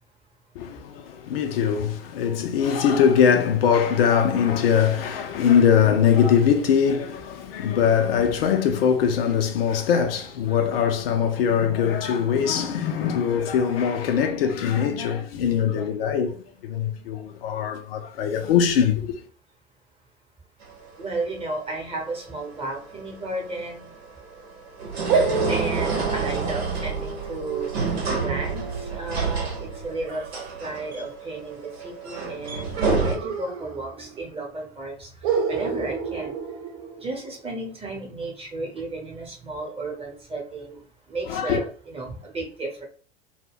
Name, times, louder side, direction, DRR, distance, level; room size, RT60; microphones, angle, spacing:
voice 1, 0.6-19.1 41.3-41.6, left 7 dB, 65° left, 0.5 m, -22 dB
sound 1, 20.6-33.1, right 4 dB, 75° right, 0.9 m, -29 dB
voice 2, 21.0-23.9 25.5-27.7 28.2-30.3 30.6-35.1 35.5-36.3 37.0-40.8 41.1-42.8, right 2 dB, 20° right, 0.9 m, -33 dB
sound 2, 25.1-30.5 32.7-34.2 34.5-34.6 35.2-37.4, right 5 dB, 45° right, 0.6 m, -30 dB
2.2 x 2.2 x 3.4 m
figure-of-eight pair, 80°, 32 cm